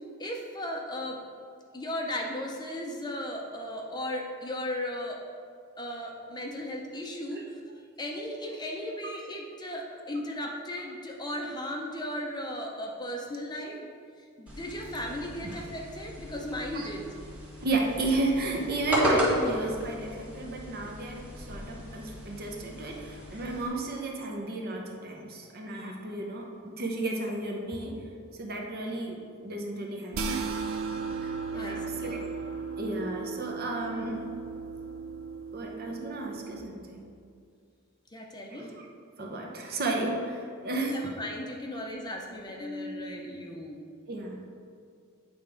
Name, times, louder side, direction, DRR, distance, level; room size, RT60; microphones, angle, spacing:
voice 1, 0.2-1.2 1.7-5.2 5.8-7.6 8.0-13.9 14.4-17.1 31.5-32.2 38.1-38.7 40.9-43.8, left 1 dB, 20° left, 1 dB, 0.6 m, -36 dB
sound 1, 14.5-23.7, equal, 5° right, 1.8 m, -34 dB
voice 2, 17.6-28.0 28.4-30.5 31.2-32.3 32.8-34.3 35.5-37.0 38.5-38.9 39.2-41.1 44.1-44.4, right 2 dB, 45° right, 1 dB, 0.9 m, -33 dB
sound 2, 30.1-36.6, right 5 dB, 65° right, 0.5 m, -36 dB
8.8 x 3.5 x 5.1 m, 2.3 s
head